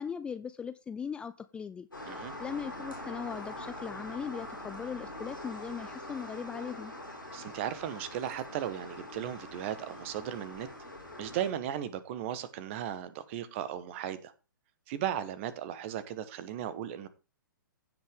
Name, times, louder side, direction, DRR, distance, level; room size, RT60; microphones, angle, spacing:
voice 1, 0.0-1.9 2.4-6.9, left 6 dB, 10° left, 0.4 m, -39 dB
sound 1, 1.9-11.5, left 1 dB, 80° left, 5.0 m, -44 dB
voice 2, 7.3-10.7 11.2-14.3 14.9-17.1, right 10 dB, 35° right, 1.3 m, -36 dB
16.0 x 5.8 x 3.7 m
figure-of-eight pair, 120°, 11 cm